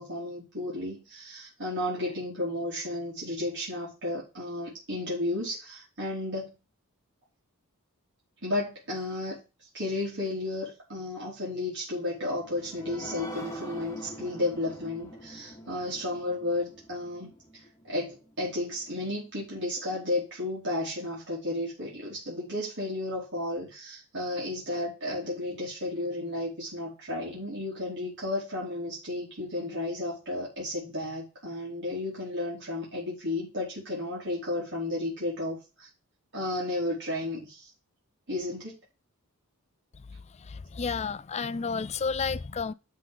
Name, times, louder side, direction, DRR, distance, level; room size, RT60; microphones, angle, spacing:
voice 1, 0.0-6.5 8.4-9.4 9.7-35.9 36.3-37.7 38.3-38.8, left 1 dB, 55° right, 3.8 m, -33 dB
sound 1, 12.2-19.3 19.7-19.8 20.2-20.3, equal, 15° left, 1.6 m, -44 dB
voice 2, 40.5-42.7, left 5 dB, 30° left, 0.4 m, -31 dB
12.5 x 4.2 x 5.4 m
head